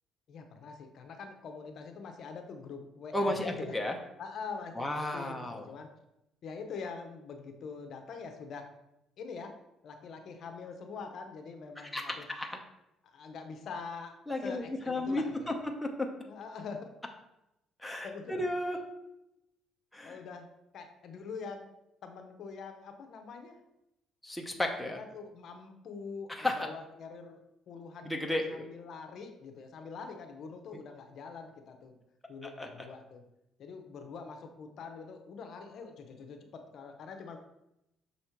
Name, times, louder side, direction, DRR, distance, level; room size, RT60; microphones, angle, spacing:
voice 1, 0.3-3.7 4.2-5.9 6.4-8.6 9.2-9.5 9.8-12.2 13.0-14.1 14.4-15.6 16.3-16.9 18.0-18.4 20.0-20.5 20.7-21.7 22.0-23.6 25.0-27.4 27.7-31.9 32.3-33.2 33.6-37.4, left 5 dB, 55° left, 5 dB, 0.8 m, -44 dB
voice 2, 3.1-3.9 4.8-5.7 11.8-12.0 12.3-12.6 14.3-16.1 17.8-18.8 19.9-20.2 24.2-25.0 26.3-26.7 28.0-28.4 32.4-32.9, left 1 dB, 5° left, 2 dB, 0.8 m, -33 dB
6.5 x 4.2 x 4.5 m, 0.87 s
cardioid pair, 130°, 0 cm